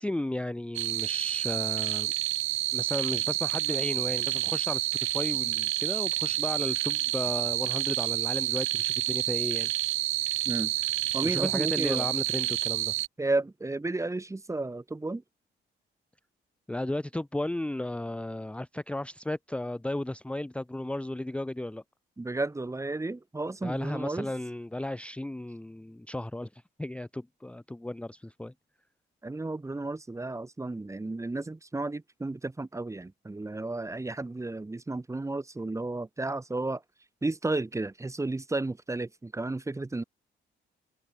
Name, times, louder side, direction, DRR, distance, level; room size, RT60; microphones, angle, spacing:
voice 1, 0.0-2.1 2.7-9.7 11.2-12.9 16.7-21.8 23.6-28.5, left 1 dB, 5° left, 0.8 m, -34 dB
sound 1, 0.8-13.1, right 18 dB, 90° right, 0.6 m, -29 dB
voice 2, 11.1-12.1 13.2-15.2 22.2-24.3 29.2-36.8 37.2-40.0, right 2 dB, 15° right, 1.4 m, -33 dB
cardioid pair, 90°, 20 cm